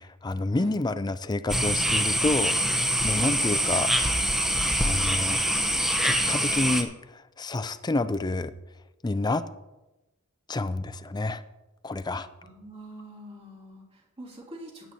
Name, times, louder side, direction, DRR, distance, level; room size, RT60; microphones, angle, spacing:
voice 1, 0.2-3.9 4.8-5.4 6.0-8.5 9.0-9.4 10.5-11.4 11.8-12.3, left 2 dB, 20° left, 12 dB, 0.5 m, -29 dB
sound 1, 1.5-6.8, equal, ahead, 0.9 m, -25 dB
voice 2, 12.4-14.9, right 1 dB, 30° right, -4 dB, 3.1 m, -44 dB
16.5 x 10.5 x 2.8 m, 1.0 s
head